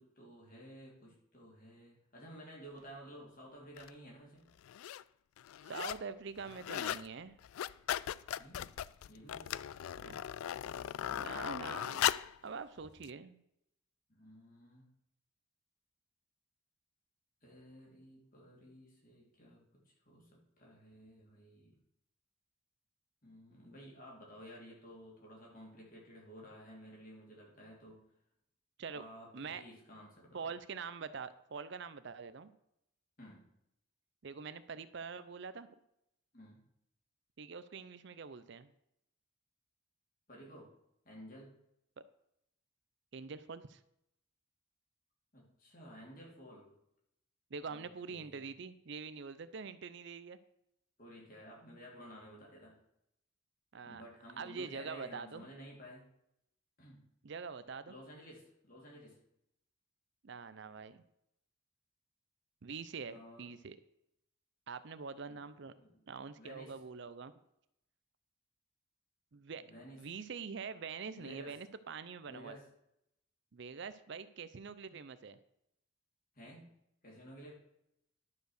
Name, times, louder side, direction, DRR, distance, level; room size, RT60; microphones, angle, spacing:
voice 1, 0.0-4.5 8.4-8.7 9.1-9.6 10.9-11.4 14.1-14.9 17.4-19.6 20.0-21.7 23.2-28.1 28.9-30.5 33.2-33.5 36.3-36.6 40.3-40.7 41.0-41.5 45.3-46.7 47.7-48.4 51.0-52.8 53.8-56.0 56.8-57.0 57.9-59.2 63.1-63.5 65.3-65.4 65.8-66.0 66.4-66.7 69.6-70.0 71.2-71.6 72.3-72.7 76.3-76.8 77.0-77.5, equal, 40° left, -3 dB, 3.2 m, -53 dB
sound 1, 3.8-3.9 4.6-5.0 5.4-6.1 6.4-7.1 7.4-12.4 13.0-13.1, left 11 dB, 85° left, 0.3 m, -37 dB
voice 2, 5.6-7.4 10.0-10.2 11.2-12.1 12.4-13.4 28.8-29.0 29.3-29.6 30.3-32.5 34.2-35.7 37.4-38.7 43.1-43.8 47.5-50.4 53.7-54.0 54.4-55.5 57.2-57.9 60.2-61.0 62.6-63.8 64.7-65.7 66.1-67.3 69.3-69.6 70.0-72.6 73.5-75.4, right 5 dB, 55° right, 13 dB, 0.5 m, -45 dB
11.5 x 5.3 x 6.5 m, 0.79 s
head